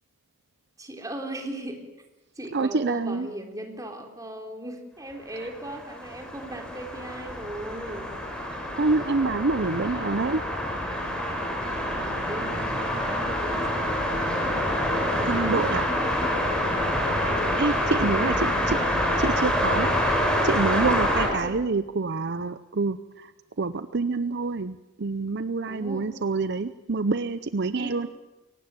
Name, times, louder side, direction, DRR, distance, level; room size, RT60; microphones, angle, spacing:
voice 1, 0.8-1.9 2.4-8.1 11.7-14.0 15.2-16.6 18.0-19.1 21.4-21.7 25.7-26.1 27.8-28.0, right 1 dB, 20° right, 3 dB, 3.4 m, -38 dB
voice 2, 2.5-3.3 5.4-5.5 8.5-10.4 15.3-15.8 17.6-18.8 19.2-19.9 20.4-23.3 23.6-28.1, right 3 dB, 60° right, 12 dB, 0.7 m, -27 dB
sound 1, 5.5-21.3, equal, 5° left, 5.7 m, -26 dB
23.0 x 18.5 x 9.0 m, 1.0 s
head